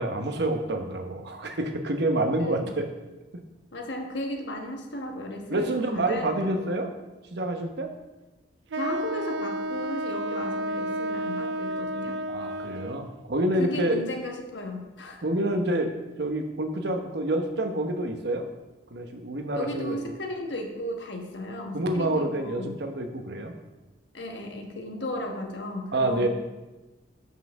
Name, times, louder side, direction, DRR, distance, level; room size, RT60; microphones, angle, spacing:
voice 1, 0.0-2.9 5.5-6.9 7.3-7.9 12.3-14.0 15.2-15.9 16.2-18.4 18.9-20.0 21.7-23.5 25.9-26.3, right 1 dB, 65° right, 5 dB, 1.0 m, -27 dB
voice 2, 2.4-2.7 3.7-6.8 8.7-12.2 13.6-15.2 19.5-22.7 24.1-26.3, left 1 dB, 75° left, 3 dB, 1.2 m, -35 dB
Wind instrument woodwind instrument, 8.7-13.1, right 1 dB, 90° right, 0.4 m, -31 dB
5.9 x 5.7 x 6.1 m, 1.1 s
head